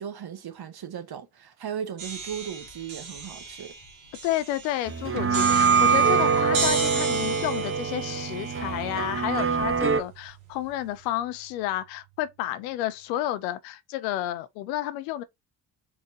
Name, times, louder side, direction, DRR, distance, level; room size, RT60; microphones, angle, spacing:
voice 1, 0.0-3.7, right 8 dB, 50° right, 1.3 m, -37 dB
sound 1, 2.0-9.9, right 3 dB, 85° right, 2.3 m, -35 dB
voice 2, 4.2-15.2, left 13 dB, 85° left, 0.7 m, -31 dB
sound 2, 4.9-10.0, right 5 dB, 25° right, 0.9 m, -24 dB
sound 3, 5.2-12.0, right 23 dB, 70° right, 0.6 m, -40 dB
4.3 x 4.2 x 2.8 m
hypercardioid pair, 45°, 49 cm